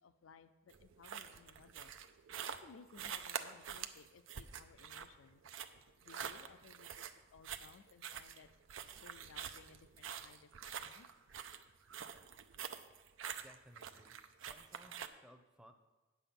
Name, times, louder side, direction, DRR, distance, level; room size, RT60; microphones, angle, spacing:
voice 1, 0.0-1.9 2.5-5.4 6.0-8.5 9.0-11.1, left 5 dB, 85° left, 11 dB, 0.5 m, -60 dB
sound 1, 0.7-15.1, right 8 dB, 85° right, 0.6 m, -47 dB
voice 2, 13.4-15.7, equal, 5° right, 7 dB, 0.7 m, -61 dB
9.0 x 7.0 x 5.8 m, 1.2 s
head